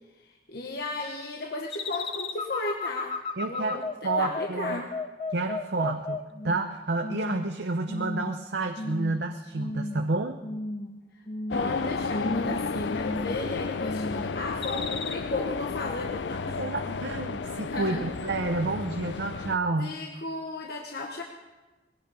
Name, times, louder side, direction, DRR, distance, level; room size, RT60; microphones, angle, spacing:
voice 1, 0.2-3.2 3.4-4.9 11.5-16.6 17.7-18.0 19.8-21.2, left 2 dB, 60° left, 1 dB, 1.2 m, -34 dB
sound 1, 1.7-6.7 7.0-7.5 7.9-8.4 8.8-9.2 9.5-10.1 10.4-10.9 11.3-11.8 12.1-12.6 12.9-13.4 13.8-14.3 14.6-15.1, left 3 dB, 30° left, 0.8 m, -34 dB
voice 2, 3.4-4.8 5.3-10.4 16.5-20.0, right 3 dB, 70° right, 6 dB, 0.7 m, -30 dB
sound 2, 11.5-19.6, left 4 dB, 85° left, 0.5 m, -33 dB
20.5 x 16.5 x 4.1 m, 1.1 s
head